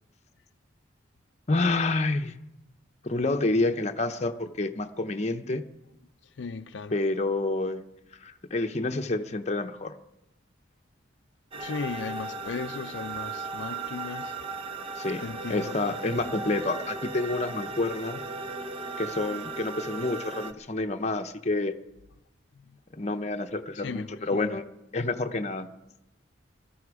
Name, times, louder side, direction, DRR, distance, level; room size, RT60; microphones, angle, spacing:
voice 1, 1.5-2.3 3.0-5.6 6.9-7.8 8.2-9.9 15.0-15.2 15.5-18.2 19.0-21.7 23.0-24.6 24.9-25.7, left 2 dB, 35° left, 0.8 m, -28 dB
voice 2, 6.4-7.0 11.6-14.4 15.2-15.9 22.6-22.8 23.7-24.6, left 4 dB, 70° left, 0.5 m, -37 dB
sound 1, 11.5-20.5, right 3 dB, 30° right, 0.7 m, -36 dB
21.0 x 13.5 x 4.8 m
head